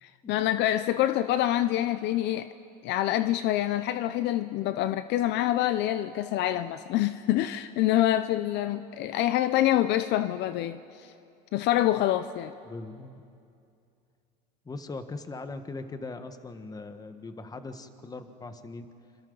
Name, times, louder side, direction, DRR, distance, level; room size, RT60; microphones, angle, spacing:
voice 1, 0.0-2.5 2.8-11.1 11.5-12.5, left 13 dB, 60° left, 12 dB, 0.7 m, -26 dB
voice 2, 12.6-13.2 14.6-18.8, left 3 dB, 20° left, 8 dB, 1.4 m, -40 dB
27.0 x 25.5 x 4.0 m, 2.5 s
supercardioid pair, 110°, 20 cm